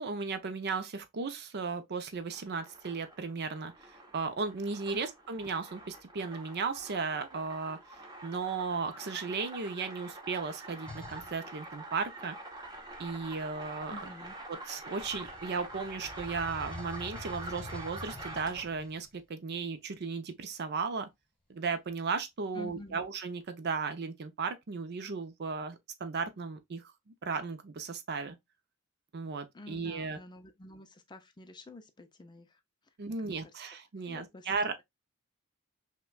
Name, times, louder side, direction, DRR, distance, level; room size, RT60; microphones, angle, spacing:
voice 1, 0.0-3.7 4.1-7.8 8.2-12.4 13.0-14.1 14.5-21.1 21.5-26.8 27.2-28.4 29.1-30.2 33.0-34.8, right 4 dB, 50° right, 0.5 m, -35 dB
sound 1, 2.1-18.8, right 2 dB, 20° right, 0.8 m, -46 dB
sound 2, 10.9-11.3 12.6-14.5 15.0-19.1, left 2 dB, 5° left, 1.5 m, -47 dB
voice 2, 13.9-14.4 22.5-23.0 29.5-32.6 33.2-33.3 34.0-34.5, left 2 dB, 20° left, 0.4 m, -49 dB
5.6 x 2.2 x 2.2 m
head